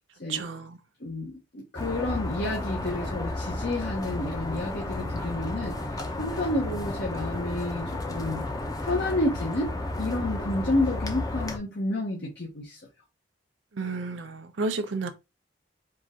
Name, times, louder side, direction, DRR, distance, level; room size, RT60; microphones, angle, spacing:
voice 1, 0.3-0.8 13.7-15.1, right 3 dB, 75° right, 0.6 m, -31 dB
voice 2, 1.0-5.8 6.2-8.5 8.8-9.7 10.0-12.8, left 2 dB, 60° left, 1.1 m, -30 dB
sound 1, 1.8-11.6, left 2 dB, 20° left, 0.7 m, -32 dB
4.7 x 2.5 x 3.6 m
head